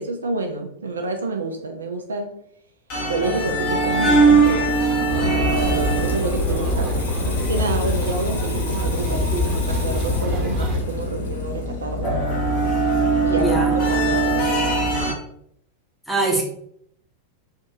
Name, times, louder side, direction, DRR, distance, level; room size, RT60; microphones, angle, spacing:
voice 1, 0.0-2.3 3.1-4.8 5.5-12.1 13.2-13.5 13.9-14.8, right 3 dB, 70° right, 4 dB, 0.4 m, -28 dB
sound 1, 2.9-15.1, right 2 dB, 45° left, 1.1 m, -22 dB
Water tap faucet / Sink (filling or washing), 4.3-13.6 13.9-14.2, left 4 dB, 65° left, 0.5 m, -39 dB
sound 2, 5.1-10.8, left 1 dB, 30° right, 0.9 m, -25 dB
voice 2, 13.3-13.7 16.1-16.4, right 2 dB, ahead, -3 dB, 0.8 m, -22 dB
3.3 x 2.6 x 2.7 m, 0.69 s
figure-of-eight pair, 90°, 0 cm